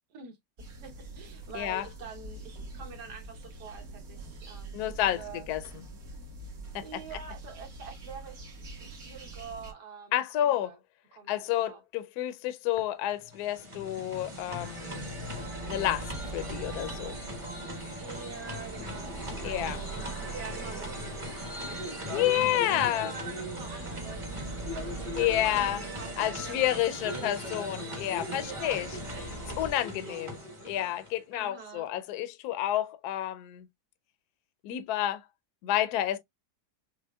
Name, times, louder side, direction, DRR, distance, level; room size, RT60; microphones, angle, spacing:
voice 1, 0.1-5.5 6.8-8.4 8.8-10.8 11.1-11.8 18.0-27.4 28.4-29.2 30.0-30.2 31.3-31.9, right 5 dB, 75° right, 1.6 m, -46 dB
sound 1, 0.6-9.7, right 2 dB, 60° right, 1.7 m, -45 dB
voice 2, 4.7-5.6 6.7-6.8 10.1-10.7 11.3-15.1 15.7-17.2 19.4-19.8 22.1-23.1 25.2-25.8 26.2-28.9 29.6-30.4 30.6-33.7 34.6-35.2 35.6-36.2, left 13 dB, 75° left, 1.0 m, -30 dB
sound 2, 13.2-31.2, equal, 20° right, 1.0 m, -39 dB
sound 3, 14.1-29.7, right 3 dB, 40° right, 0.5 m, -43 dB
6.1 x 2.1 x 2.2 m
omnidirectional pair, 1.8 m